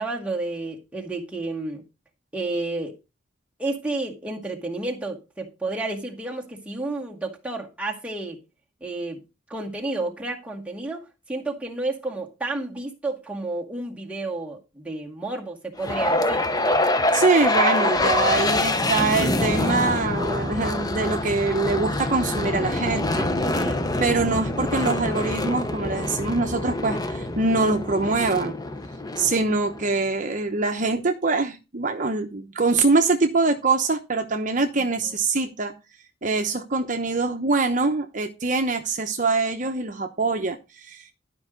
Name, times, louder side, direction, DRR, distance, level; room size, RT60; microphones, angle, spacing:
voice 1, 0.0-1.8 2.3-2.9 3.6-8.4 8.8-9.2 9.5-16.4 23.5-23.8 35.0-35.1, right 2 dB, 5° right, 2.0 m, -31 dB
sound 1, 15.8-30.0, left 2 dB, 20° left, 0.9 m, -25 dB
voice 2, 17.1-23.3 23.7-23.8 24.0-28.5 29.2-35.7 36.2-41.1, right 3 dB, 45° right, 0.9 m, -24 dB
12.0 x 5.5 x 5.1 m
head